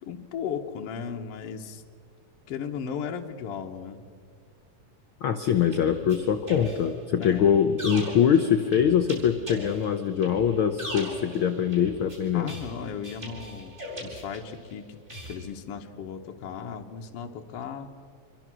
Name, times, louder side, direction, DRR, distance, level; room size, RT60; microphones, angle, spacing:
voice 1, 0.0-1.8 2.5-4.0 7.1-7.6 12.3-14.9 15.3-17.9, left 7 dB, 60° left, 2 dB, 1.9 m, -36 dB
voice 2, 5.2-12.5, left 8 dB, 90° left, 8 dB, 1.1 m, -23 dB
sound 1, 5.4-14.7 15.1-15.3, equal, 20° right, 7.7 m, -40 dB
27.0 x 23.5 x 6.2 m, 2.2 s
omnidirectional pair, 3.6 m